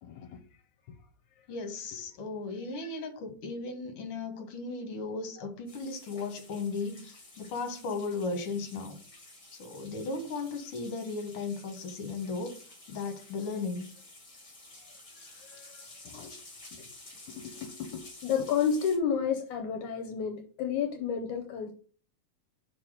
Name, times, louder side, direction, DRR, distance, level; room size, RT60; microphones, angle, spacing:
voice 1, 0.0-0.4 14.8-15.0 15.4-16.4 16.7-16.9 17.3-21.7, left 7 dB, 75° left, 2.1 m, -32 dB
voice 2, 1.5-9.0 9.6-12.6 12.9-13.9, left 3 dB, 50° left, 2.2 m, -36 dB
sound 1, 5.7-19.0, left 2 dB, 25° left, 2.2 m, -51 dB
6.0 x 4.7 x 6.4 m
omnidirectional pair, 3.6 m